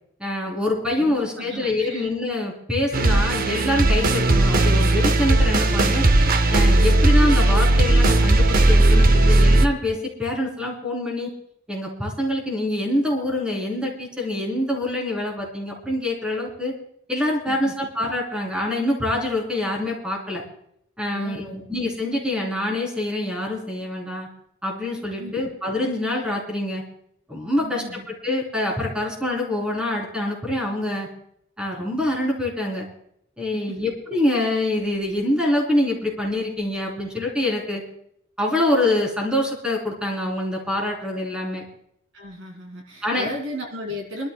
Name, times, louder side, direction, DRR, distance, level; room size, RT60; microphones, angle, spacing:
voice 1, 0.2-6.0 6.5-11.3 11.7-16.7 17.1-20.4 21.0-24.3 24.6-26.8 27.3-27.8 28.2-31.1 31.6-32.9 33.4-37.8 38.4-41.6 43.0-43.3, left 1 dB, 5° right, -1 dB, 3.6 m, -25 dB
voice 2, 0.9-2.1 17.5-17.7 21.1-21.7 25.2-25.5 27.6-28.1 33.7-33.9 42.1-44.3, left 1 dB, 65° right, 2 dB, 2.4 m, -35 dB
sound 1, 2.9-9.7, right 2 dB, 45° right, 0.7 m, -17 dB
26.0 x 12.5 x 2.3 m, 0.71 s
head